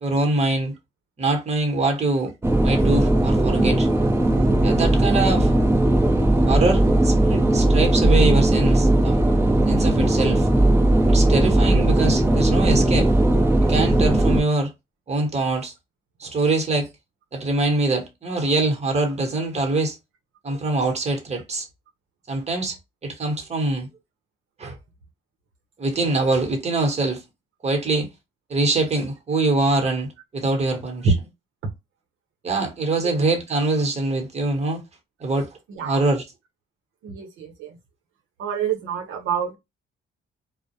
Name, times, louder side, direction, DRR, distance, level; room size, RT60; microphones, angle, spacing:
voice 1, 0.0-0.7 1.2-2.3 2.6-3.9 4.6-5.5 6.5-9.2 9.7-10.5 11.1-13.1 13.6-14.7 15.1-15.7 16.2-16.9 17.3-19.9 20.4-21.7 22.3-22.8 23.0-23.9 24.6-24.8 25.8-27.2 27.6-28.1 28.5-31.1 32.4-34.8 35.2-35.5 35.8-36.2, right 2 dB, 35° right, 1.0 m, -23 dB
sound 1, 2.4-14.4, right 1 dB, 10° right, 0.7 m, -18 dB
voice 2, 35.7-36.0 37.0-37.8 38.4-39.6, right 5 dB, 80° right, 0.7 m, -26 dB
2.2 x 2.0 x 2.7 m
cardioid pair, 90°, 20 cm